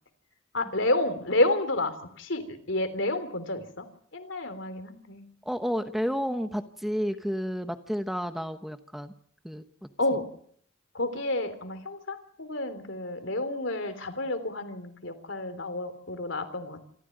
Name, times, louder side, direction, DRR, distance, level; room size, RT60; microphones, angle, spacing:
voice 1, 0.5-3.8 4.1-5.3 10.0-10.2 10.9-16.8, left 2 dB, 70° left, 10 dB, 3.3 m, -30 dB
voice 2, 5.5-9.1 9.4-9.6, equal, ahead, 8 dB, 1.0 m, -31 dB
27.0 x 14.5 x 9.2 m, 0.63 s
head